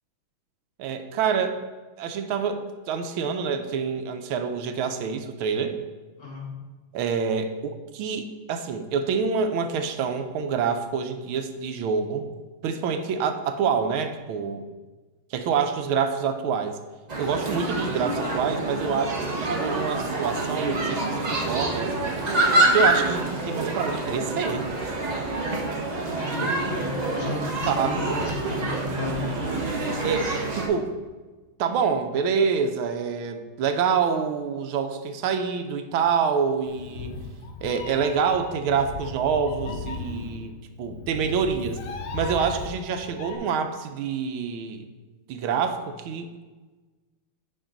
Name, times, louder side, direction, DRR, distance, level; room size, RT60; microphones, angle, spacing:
voice 1, 0.8-1.6 2.0-5.7 6.9-12.2 12.6-14.6 15.3-16.8 17.2-21.9 22.7-24.6 27.7-28.2 30.0-30.9 31.6-37.2 37.6-40.5 40.8-41.8 42.1-44.9 45.3-46.3, right 6 dB, 80° right, 7 dB, 1.5 m, -26 dB
voice 2, 6.2-6.5 26.1-29.1, left 3 dB, 45° left, -2 dB, 1.4 m, -34 dB
sound 1, 17.1-30.7, right 2 dB, 55° right, 0.4 m, -26 dB
Meow, 36.7-43.4, left 4 dB, 70° left, 0.8 m, -36 dB
8.6 x 5.5 x 3.8 m, 1.3 s
omnidirectional pair, 2.3 m